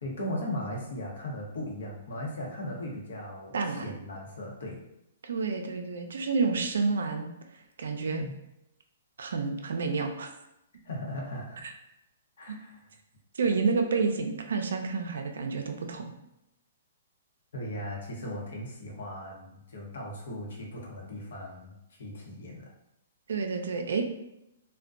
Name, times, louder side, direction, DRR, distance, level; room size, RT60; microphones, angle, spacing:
voice 1, 0.0-4.8 8.1-8.3 10.8-11.6 12.4-12.8 17.5-22.7, left 1 dB, 75° left, -2 dB, 0.8 m, -38 dB
voice 2, 3.5-3.9 5.2-7.3 7.5-8.2 9.2-10.3 11.6-11.7 12.5-12.6 13.3-16.1 23.3-24.0, right 4 dB, 75° right, 5 dB, 0.4 m, -29 dB
2.5 x 2.1 x 2.3 m, 0.85 s
hypercardioid pair, 135°, 0 cm